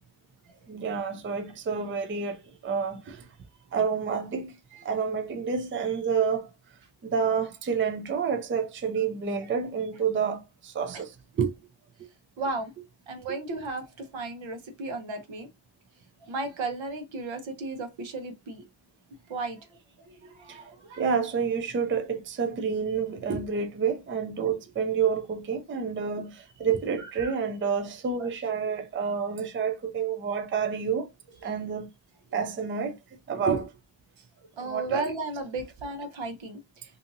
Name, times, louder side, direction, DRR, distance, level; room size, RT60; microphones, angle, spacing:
voice 1, 0.7-3.3 3.7-4.6 4.8-6.5 7.0-11.5 13.3-13.4 20.5-20.6 21.0-31.1 31.4-31.9 32.3-33.0 33.3-33.7 34.6-35.1, right 6 dB, 30° right, 0.4 m, -29 dB
voice 2, 12.4-12.7 13.1-15.5 16.3-18.6 19.3-19.8 20.1-21.0 27.2-27.3 28.2-28.3 31.4-31.5 34.6-36.6, right 3 dB, 80° right, 0.8 m, -35 dB
2.7 x 2.6 x 2.5 m
wide cardioid pair, 135°, 46 cm